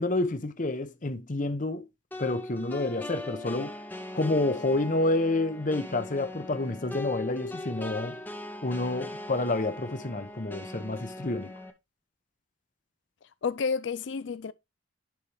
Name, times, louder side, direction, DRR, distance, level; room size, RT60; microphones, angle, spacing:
voice 1, 0.0-1.9 2.2-3.8 4.1-8.2 8.6-11.5, left 2 dB, 40° left, 0.9 m, -29 dB
sound 1, 2.1-11.7, left 1 dB, 10° left, 0.8 m, -40 dB
voice 2, 13.4-14.5, left 5 dB, 65° left, 0.4 m, -30 dB
10.5 x 4.3 x 3.3 m
head